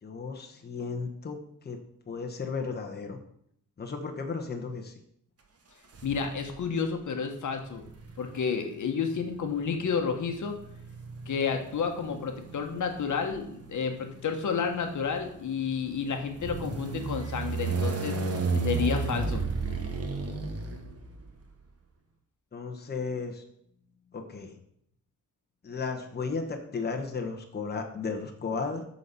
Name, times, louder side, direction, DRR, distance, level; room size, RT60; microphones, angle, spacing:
voice 1, 0.0-1.8 2.1-3.2 3.8-5.0 22.5-23.4 24.1-24.6 25.6-28.8, left 4 dB, 30° left, 3 dB, 1.1 m, -34 dB
sound 1, 5.9-6.7 7.7-21.4, right 4 dB, 50° right, 1.2 m, -34 dB
voice 2, 6.0-7.8 8.2-10.5 11.3-18.1 18.5-19.4, left 6 dB, 70° left, 5 dB, 1.2 m, -31 dB
9.3 x 4.2 x 6.8 m, 0.71 s
wide cardioid pair, 160°, 31 cm